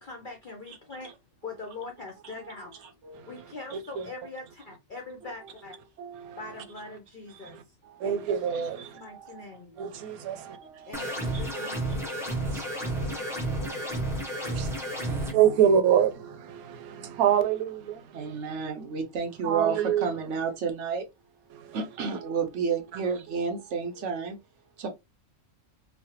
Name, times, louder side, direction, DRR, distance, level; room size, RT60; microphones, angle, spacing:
voice 1, 0.1-1.1 1.4-2.7 3.3-4.4 4.9-5.7 6.4-7.5 8.0-8.6 9.0-9.6 10.9-12.1, left 3 dB, 60° left, 0.5 m, -42 dB
voice 2, 2.2-3.3 3.7-3.8 5.2-5.5 6.0-6.6 7.8-8.3 8.9-9.6 10.3-11.0 11.3-15.6 18.1-21.1 21.7-24.4 24.8-24.9, right 6 dB, 60° right, 0.9 m, -34 dB
voice 3, 3.7-4.1 6.2-6.4 7.4-7.6 8.0-9.0 9.8-10.9 12.4-13.3 13.7-13.8 14.3-18.2 19.4-20.1 21.5-21.8, right 9 dB, 85° right, 1.0 m, -27 dB
sound 1, 10.9-15.3, right 1 dB, 5° right, 0.4 m, -31 dB
3.2 x 2.1 x 2.8 m
omnidirectional pair, 1.5 m